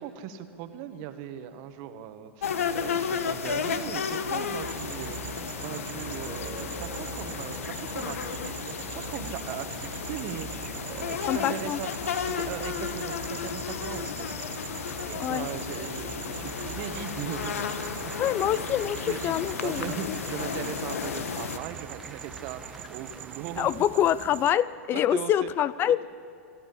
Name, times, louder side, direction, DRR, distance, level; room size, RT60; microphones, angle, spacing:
voice 1, 0.0-5.2 5.6-14.3 15.0-17.8 19.0-19.3 19.6-23.7 25.1-25.5, right 9 dB, 45° right, 9 dB, 1.6 m, -39 dB
sound 1, 2.4-21.6, left 7 dB, 80° left, 1.3 m, -33 dB
sound 2, 4.6-24.5, right 10 dB, 25° right, 0.8 m, -42 dB
voice 2, 11.3-11.8 15.2-15.5 18.2-20.2 23.6-26.1, left 11 dB, 30° left, 19 dB, 0.4 m, -26 dB
sound 3, 16.0-24.0, right 1 dB, ahead, 1.3 m, -47 dB
25.5 x 12.5 x 8.6 m, 2.4 s
hypercardioid pair, 120°, 8 cm